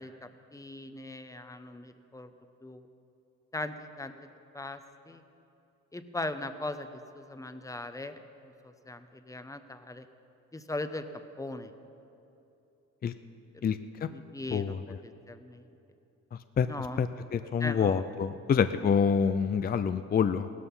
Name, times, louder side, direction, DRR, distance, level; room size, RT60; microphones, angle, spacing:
voice 1, 0.0-2.3 2.6-2.8 3.5-4.3 4.5-4.8 5.1-5.2 5.9-8.2 8.6-10.1 10.5-11.0 11.4-11.7 13.5-13.8 14.1-14.8 15.0-15.6 16.7-17.0 17.6-18.0, left 2 dB, 10° left, 9 dB, 0.8 m, -39 dB
voice 2, 13.6-14.1 14.5-14.8 16.6-16.7 17.0-20.5, left 6 dB, 30° left, 11 dB, 0.5 m, -27 dB
17.0 x 13.0 x 5.5 m, 2.9 s
cardioid pair, 90°, 30 cm